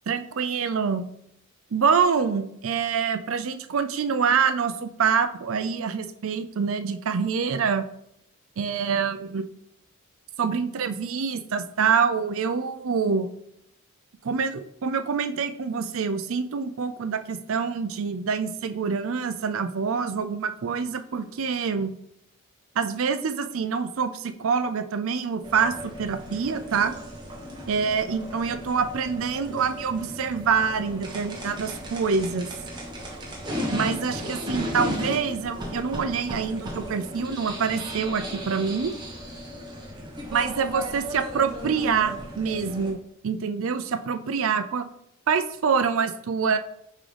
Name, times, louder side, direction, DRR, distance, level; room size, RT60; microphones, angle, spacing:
voice 1, 0.1-1.1 1.7-7.9 8.6-9.4 10.4-13.3 14.2-21.9 22.8-27.0 27.7-32.5 33.7-38.9 40.3-44.9 45.3-46.6, right 6 dB, 70° right, 9 dB, 0.5 m, -26 dB
sound 1, 25.4-42.9, equal, 20° right, 1.1 m, -35 dB
8.8 x 3.7 x 3.3 m, 0.75 s
head